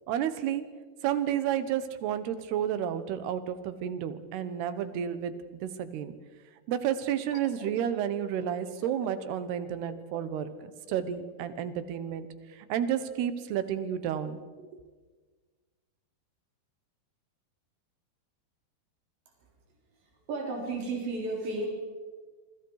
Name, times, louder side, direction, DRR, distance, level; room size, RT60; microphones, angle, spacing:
voice 1, 0.1-0.6 1.0-5.3 5.6-6.2 6.7-12.3 12.5-14.4, right 9 dB, 75° right, 12 dB, 3.2 m, -31 dB
sound 1, 7.3-12.6, left 5 dB, 85° left, 1.2 m, -50 dB
voice 2, 20.3-21.7, right 3 dB, 90° right, -1 dB, 6.4 m, -32 dB
28.0 x 23.5 x 4.9 m, 1.4 s
omnidirectional pair, 5.0 m